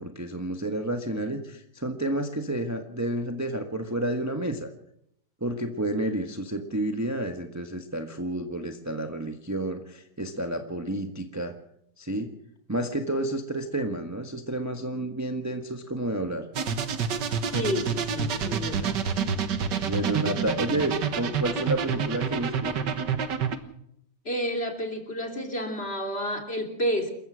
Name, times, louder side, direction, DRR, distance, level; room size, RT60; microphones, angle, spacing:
voice 1, 0.0-4.7 5.4-11.5 12.0-12.3 12.7-16.5 19.8-22.7, right 1 dB, 10° right, 5 dB, 1.3 m, -30 dB
sound 1, 16.5-23.6, right 6 dB, 70° right, 2.0 m, -28 dB
voice 2, 17.5-19.0 21.4-21.6 24.2-27.1, equal, 35° left, 4 dB, 3.3 m, -30 dB
27.5 x 14.5 x 6.3 m, 0.73 s
omnidirectional pair, 2.0 m